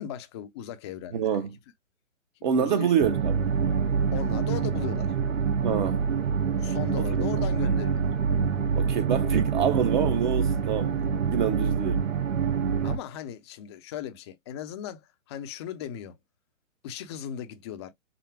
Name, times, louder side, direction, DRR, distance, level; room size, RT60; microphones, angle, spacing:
voice 1, 0.0-1.4 2.6-2.9 4.1-5.1 6.6-8.1 12.8-16.2 16.8-17.9, left 10 dB, 20° left, 0.5 m, -37 dB
voice 2, 1.1-1.5 2.4-3.5 5.6-6.0 7.2-7.3 8.8-11.0 11.3-12.0, right 8 dB, 35° right, 0.7 m, -26 dB
sound 1, 3.0-13.0, right 6 dB, 75° right, 1.0 m, -26 dB
5.9 x 2.0 x 3.1 m
figure-of-eight pair, 125°, 40 cm